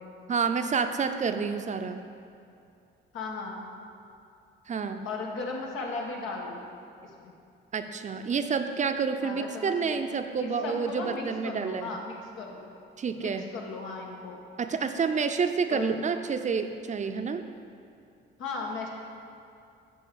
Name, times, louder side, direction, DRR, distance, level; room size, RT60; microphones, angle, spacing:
voice 1, 0.3-2.0 4.7-5.1 7.7-11.9 13.0-13.5 14.6-17.5, right 5 dB, 40° right, 8 dB, 0.5 m, -29 dB
voice 2, 3.1-3.7 5.0-6.7 7.0-7.3 9.2-12.7 13.2-14.4 15.7-15.9 18.4-18.9, left 3 dB, 90° left, -1 dB, 1.5 m, -37 dB
8.6 x 4.7 x 6.9 m, 2.5 s
cardioid pair, 90°, 20 cm